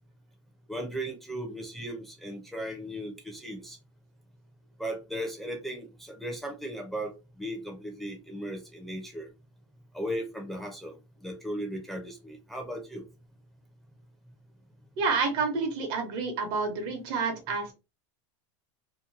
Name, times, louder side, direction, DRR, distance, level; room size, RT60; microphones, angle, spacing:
voice 1, 0.7-3.8 4.8-7.1 7.4-9.3 9.9-11.0 11.2-13.0, equal, ahead, 1 dB, 0.6 m, -36 dB
voice 2, 15.0-17.6, right 4 dB, 60° right, 4 dB, 1.0 m, -29 dB
2.9 x 2.2 x 2.5 m, 0.27 s
supercardioid pair, 125°, 16 cm